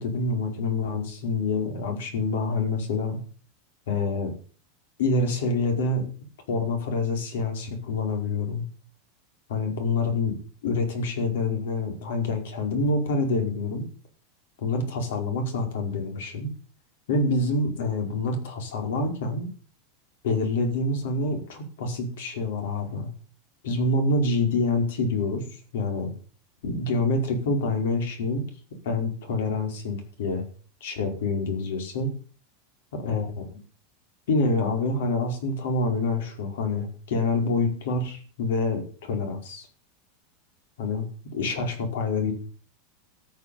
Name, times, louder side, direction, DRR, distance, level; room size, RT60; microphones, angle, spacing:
voice 1, 0.0-3.2 3.9-4.3 5.0-6.0 6.5-8.7 9.5-10.3 10.6-13.8 14.6-16.5 17.1-19.5 20.2-23.1 23.6-25.4 25.7-26.1 26.6-28.4 28.8-30.4 30.8-32.1 32.9-33.5 34.3-39.7 40.8-42.3, left 3 dB, 80° left, 5 dB, 5.0 m, -26 dB
14.0 x 7.2 x 8.6 m, 0.41 s
supercardioid pair, 170°, 0 cm